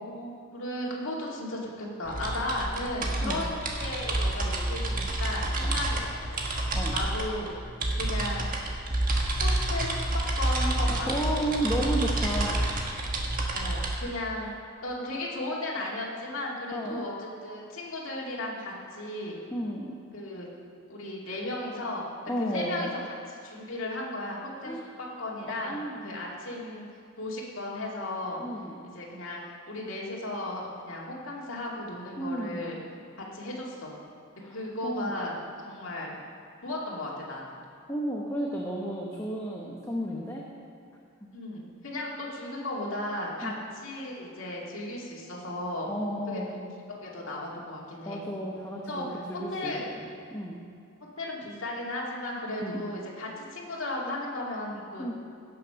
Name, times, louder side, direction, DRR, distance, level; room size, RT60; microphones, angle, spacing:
voice 1, 0.0-6.4 6.9-7.5 8.0-8.5 9.4-10.0 10.4-11.4 13.5-14.5 14.8-19.4 20.1-20.5 20.9-22.1 22.4-22.9 23.4-26.8 27.2-28.4 28.9-32.8 33.2-34.0 34.5-35.4 35.6-36.2 36.6-37.6 41.3-45.9 46.3-46.6 46.9-48.2 48.9-49.0 49.5-49.8 51.2-55.1, left 1 dB, 70° left, -4 dB, 2.3 m, -35 dB
sound 1, 2.0-14.0, right 1 dB, 40° right, 1.4 m, -29 dB
voice 2, 11.1-12.7 16.7-17.0 19.5-19.9 22.3-22.9 24.6-24.9 25.4-26.2 28.4-28.8 32.2-32.8 34.4-34.6 34.8-35.3 37.9-40.5 41.2-41.3 43.4-43.5 45.9-46.6 48.0-49.7 50.0-50.6 52.6-52.8 55.0-55.1, right 1 dB, 15° left, -2 dB, 0.9 m, -33 dB
16.5 x 6.8 x 5.7 m, 2.3 s
head